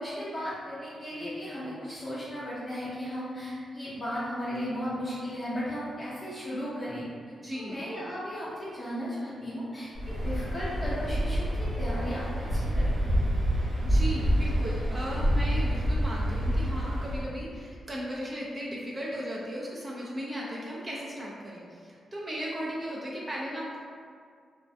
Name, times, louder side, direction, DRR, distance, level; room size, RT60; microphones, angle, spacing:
voice 1, 0.0-7.0 7.6-13.2 13.7-13.8, equal, 25° left, -10 dB, 0.5 m, -36 dB
voice 2, 7.4-7.9 13.8-23.8, equal, 30° right, -5 dB, 0.4 m, -36 dB
Waves surf, 9.9-17.3, equal, 80° right, 0.8 m, -27 dB
2.3 x 2.1 x 2.6 m, 2.1 s
cardioid pair, 95°, 0 cm